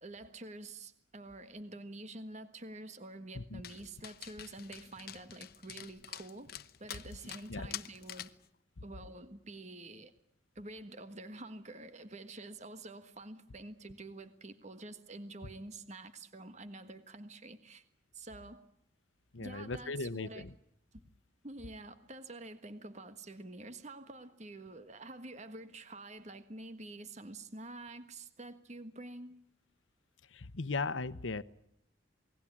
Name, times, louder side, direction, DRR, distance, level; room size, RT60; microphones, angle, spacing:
voice 1, 0.0-8.3 8.8-10.1 10.5-17.8 18.1-18.6 19.4-20.4 20.9-21.0 21.4-29.4, right 2 dB, 40° right, 10 dB, 1.5 m, -48 dB
Dog, 3.6-8.4, left 11 dB, 55° left, 1.0 m, -47 dB
voice 2, 19.3-20.5 30.3-31.4, left 3 dB, 90° left, 16 dB, 0.9 m, -37 dB
28.0 x 20.0 x 8.7 m, 0.73 s
head